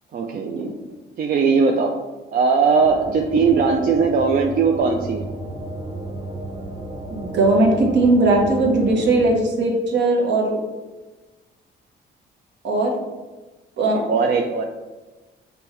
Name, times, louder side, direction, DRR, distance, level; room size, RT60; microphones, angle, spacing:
voice 1, 0.1-0.8 1.2-1.9 2.3-5.3 14.1-14.6, right 5 dB, 45° right, 1 dB, 0.4 m, -19 dB
sound 1, 2.8-9.3, right 1 dB, 20° right, 0.8 m, -33 dB
voice 2, 7.1-10.6 12.6-12.9 13.8-14.1, right 2 dB, 60° right, 0 dB, 0.9 m, -18 dB
5.2 x 2.2 x 3.0 m, 1.2 s
cardioid pair, 90°, 20 cm